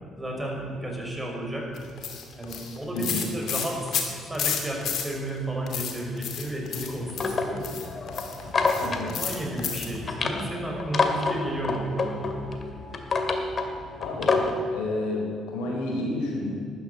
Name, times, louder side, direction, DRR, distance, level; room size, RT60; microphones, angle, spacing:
voice 1, 0.2-1.7 2.4-4.0 4.3-7.7 9.1-12.5, right 1 dB, 10° right, -1 dB, 5.5 m, -32 dB
sound 1, 1.8-5.3 5.7-10.0, left 7 dB, 70° left, 2.5 m, -32 dB
voice 2, 2.9-3.3 8.8-9.2 14.0-16.5, left 2 dB, 90° left, -1 dB, 4.3 m, -30 dB
sound 2, 6.7-14.6, left 3 dB, 45° left, 2.1 m, -28 dB
12.5 x 12.0 x 9.3 m, 2.1 s
supercardioid pair, 70°, 0 cm